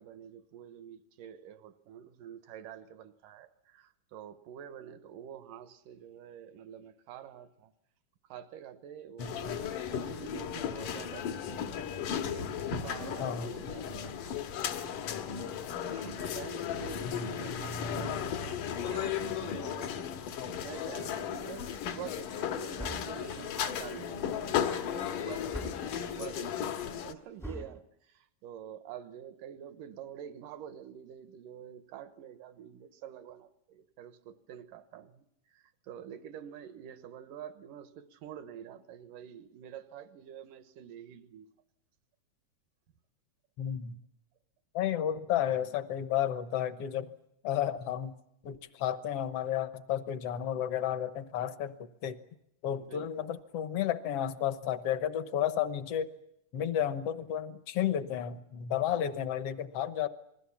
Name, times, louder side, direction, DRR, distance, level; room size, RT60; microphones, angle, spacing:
voice 1, 0.0-7.7 8.3-11.8 12.2-15.3 15.9-20.2 20.6-25.8 26.1-41.5 52.8-53.3 58.9-59.2, right 9 dB, 80° right, 11 dB, 2.7 m, -47 dB
sound 1, 9.2-27.1, left 8 dB, 80° left, 2.9 m, -35 dB
voice 2, 9.2-9.6 13.2-13.5 17.0-17.3 43.6-44.0 44.7-47.1 47.4-48.2 48.4-52.2 52.6-56.1 56.5-60.1, left 10 dB, 60° left, 12 dB, 1.7 m, -32 dB
sound 2, 22.8-23.3 25.5-26.0 27.4-27.8, equal, ahead, 0.6 m, -42 dB
28.0 x 20.5 x 7.2 m, 0.79 s
omnidirectional pair, 3.7 m